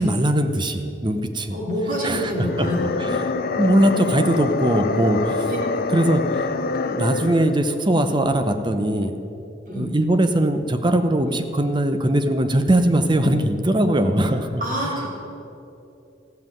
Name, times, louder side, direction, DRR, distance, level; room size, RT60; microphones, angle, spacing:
voice 1, 0.0-1.6 2.0-2.7 3.0-3.1 3.6-5.5 5.9-6.4 6.9-9.2 9.7-14.6, right 1 dB, 25° right, 8 dB, 0.7 m, -20 dB
voice 2, 1.5-3.3 5.5-5.6 9.7-9.9 14.6-15.1, equal, 50° right, -3 dB, 3.2 m, -27 dB
sound 1, 2.3-7.6, left 4 dB, 55° left, 0.6 m, -26 dB
15.0 x 5.8 x 9.1 m, 2.8 s
head